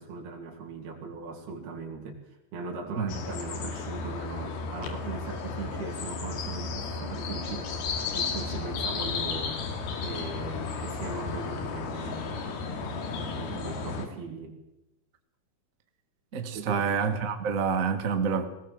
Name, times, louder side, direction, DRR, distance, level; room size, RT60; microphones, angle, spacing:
voice 1, 0.0-7.8 8.1-9.6 10.0-12.4 12.8-14.6 16.5-16.9, right 4 dB, 80° right, 1 dB, 4.8 m, -39 dB
sound 1, 3.1-14.1, left 4 dB, 80° left, 4.0 m, -34 dB
voice 2, 16.3-18.4, right 6 dB, 60° right, 7 dB, 0.8 m, -27 dB
19.5 x 19.0 x 7.5 m, 0.91 s
omnidirectional pair, 4.4 m